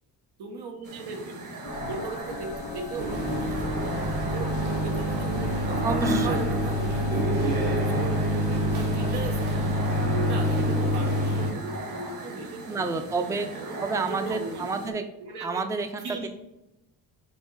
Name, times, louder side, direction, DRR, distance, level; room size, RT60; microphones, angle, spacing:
voice 1, 0.4-1.5 1.9-4.5 4.8-8.1 8.4-9.9 10.2-14.9 15.2-15.6 16.0-16.3, right 3 dB, 90° right, 2 dB, 1.2 m, -38 dB
sound 1, 0.8-14.9, right 2 dB, 55° right, 1.4 m, -40 dB
sound 2, 1.6-9.1, left 3 dB, 80° left, 1.1 m, -39 dB
sound 3, 3.0-11.5, equal, 70° right, 1.6 m, -26 dB
voice 2, 5.8-6.5 12.7-13.5 13.8-15.0 15.4-16.3, right 4 dB, 10° right, 7 dB, 0.4 m, -29 dB
5.5 x 3.9 x 4.7 m, 0.92 s
cardioid pair, 110°, 38 cm